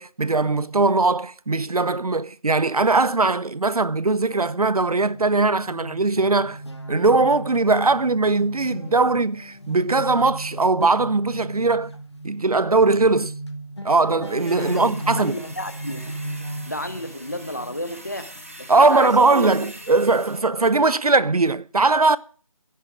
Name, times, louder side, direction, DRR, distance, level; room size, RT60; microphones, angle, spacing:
voice 1, 0.0-6.6 6.9-11.9 12.2-13.3 13.8-15.4 18.7-22.2, right 3 dB, 90° right, 0.8 m, -20 dB
sound 1, 4.2-17.0, right 2 dB, 90° left, 4.0 m, -38 dB
sound 2, 4.3-12.0 12.6-12.7 13.1-13.5 13.8-19.4, left 2 dB, 50° left, 1.1 m, -40 dB
sound 3, 14.2-20.4, right 1 dB, 25° right, 1.3 m, -43 dB
voice 2, 14.5-16.0 16.6-18.3 18.6-19.5, left 1 dB, 30° left, 0.9 m, -32 dB
13.0 x 10.5 x 6.2 m
figure-of-eight pair, 180°, 18 cm